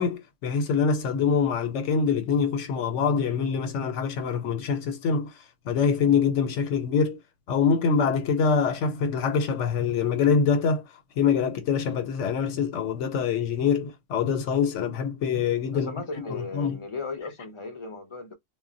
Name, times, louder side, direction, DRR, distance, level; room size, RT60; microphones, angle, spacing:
voice 1, 0.0-5.3 5.7-7.2 7.5-10.8 11.2-15.9 16.3-16.8, left 6 dB, 85° left, 1.0 m, -24 dB
voice 2, 15.7-18.3, left 4 dB, 35° left, 0.5 m, -36 dB
2.2 x 2.0 x 3.8 m
omnidirectional pair, 1.2 m